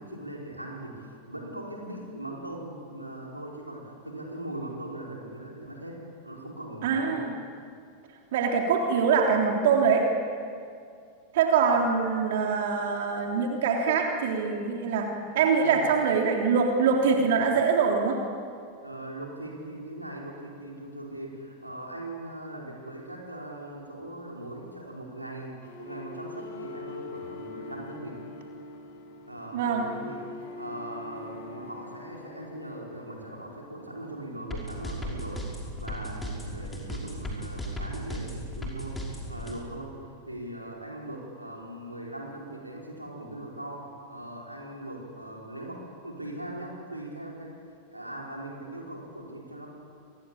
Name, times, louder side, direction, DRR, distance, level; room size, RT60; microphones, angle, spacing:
voice 1, 0.0-7.3 15.6-15.8 18.8-28.2 29.3-35.4 35.8-38.9 39.3-39.9 40.3-47.5 47.9-49.7, right 1 dB, 85° right, -2 dB, 4.9 m, -40 dB
voice 2, 6.8-7.4 8.3-10.1 11.3-18.2 29.5-29.9, right 5 dB, 55° right, 1 dB, 3.4 m, -24 dB
sound 1, 25.6-33.6, left 3 dB, 55° left, 5.5 m, -43 dB
sound 2, 34.5-39.5, left 1 dB, 10° left, 5.7 m, -35 dB
28.5 x 21.0 x 8.8 m, 2.3 s
figure-of-eight pair, 90°, 0 cm